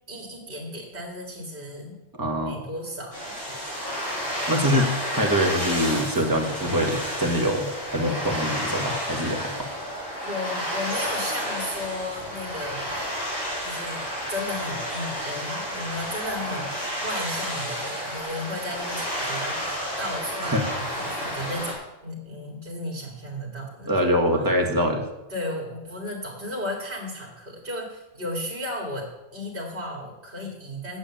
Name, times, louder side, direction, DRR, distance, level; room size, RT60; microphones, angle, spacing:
voice 1, 0.1-2.0 2.5-3.2 10.2-13.0 13.6-23.9 24.2-24.5 25.3-31.0, left 1 dB, 60° right, -1 dB, 2.4 m, -34 dB
voice 2, 2.2-2.6 4.5-9.7 20.4-20.7 23.9-25.1, equal, 20° right, 2 dB, 1.5 m, -24 dB
sound 1, 3.1-21.7, equal, 20° left, 4.1 m, -31 dB
8.3 x 7.3 x 8.8 m, 0.96 s
omnidirectional pair, 1.1 m